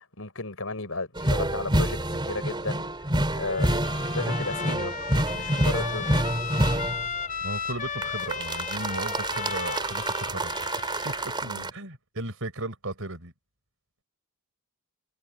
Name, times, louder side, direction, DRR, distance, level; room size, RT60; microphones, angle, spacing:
voice 1, 0.0-2.9 3.3-5.0 5.3-6.3 11.4-11.7, left 3 dB, 65° left, 6.3 m, -34 dB
sound 1, 1.2-7.1 8.0-11.7, right 1 dB, 20° right, 4.0 m, -27 dB
Trumpet, 3.3-11.5, left 6 dB, 35° left, 4.4 m, -35 dB
voice 2, 7.4-10.7 11.0-13.3, right 2 dB, 65° right, 5.6 m, -36 dB
head